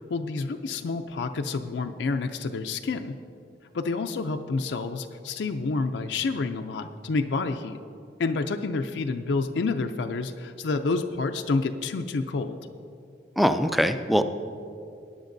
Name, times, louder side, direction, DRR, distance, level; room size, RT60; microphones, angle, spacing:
voice 1, 0.1-3.2 3.7-7.8 8.2-12.6, left 3 dB, 80° left, 6 dB, 0.4 m, -29 dB
voice 2, 13.4-14.2, equal, ahead, 9 dB, 0.3 m, -22 dB
17.5 x 9.8 x 2.6 m, 2.5 s
head